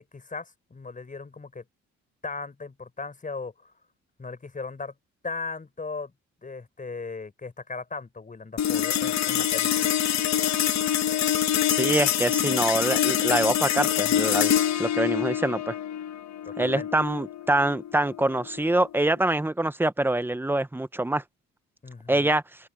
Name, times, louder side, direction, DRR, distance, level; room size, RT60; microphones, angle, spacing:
voice 1, 0.0-1.6 2.2-3.7 4.2-4.9 5.2-6.1 6.4-9.9 16.4-16.9 21.8-22.3, left 4 dB, 25° left, 4.7 m, -37 dB
sound 1, 8.6-19.2, left 10 dB, 65° left, 1.2 m, -25 dB
voice 2, 11.7-14.5 14.8-15.8 16.6-21.2 22.1-22.4, right 1 dB, 5° right, 0.9 m, -25 dB
open air
cardioid pair, 90°, 30 cm